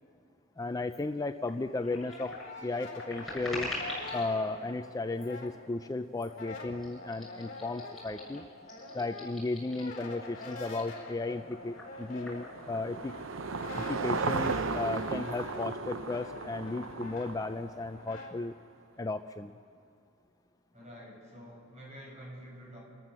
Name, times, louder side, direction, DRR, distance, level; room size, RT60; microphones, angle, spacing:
voice 1, 0.6-2.3 2.6-3.7 4.1-8.4 8.9-13.2 13.8-18.5 19.0-19.5, left 2 dB, 15° left, 8 dB, 0.4 m, -35 dB
sound 1, 0.9-1.0 1.4-4.3 5.1-5.5 6.1-6.4 6.8-10.0 10.3-13.9 14.2-14.4 14.7-15.4, left 1 dB, ahead, 7.4 m, -45 dB
Brass instrument, 1.5-5.9 6.2-18.3, left 2 dB, 45° left, 4.3 m, -45 dB
Car passing by / Engine, 11.6-18.1, right 4 dB, 75° right, 0.8 m, -35 dB
voice 2, 20.7-22.8, equal, 35° right, -3 dB, 6.7 m, -48 dB
29.0 x 14.0 x 7.2 m, 2.5 s
head